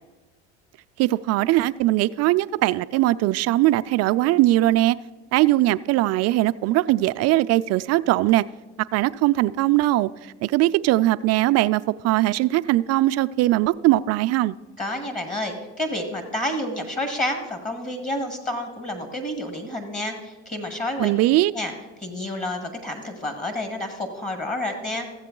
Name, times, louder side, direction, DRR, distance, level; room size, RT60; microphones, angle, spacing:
voice 1, 1.0-5.0 5.3-8.4 8.9-10.1 10.4-14.6 21.0-21.5, right 16 dB, 50° right, 13 dB, 0.4 m, -20 dB
voice 2, 14.8-21.1 21.5-21.7 22.0-25.1, left 1 dB, 25° left, 7 dB, 1.5 m, -29 dB
14.5 x 7.8 x 3.8 m, 1.2 s
supercardioid pair, 95°, 34 cm